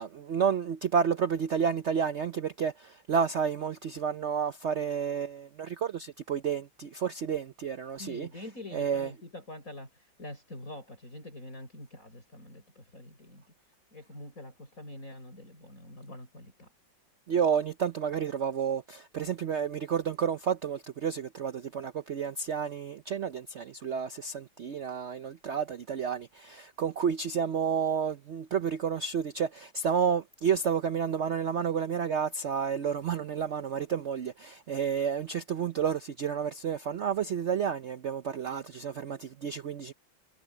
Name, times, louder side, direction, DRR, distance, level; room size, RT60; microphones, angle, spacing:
voice 1, 0.0-8.3 8.7-9.1 17.3-39.9, right 7 dB, 85° right, 0.6 m, -30 dB
voice 2, 8.0-9.9 10.2-13.4 13.9-16.7, left 1 dB, 40° left, 7.0 m, -45 dB
omnidirectional pair, 2.1 m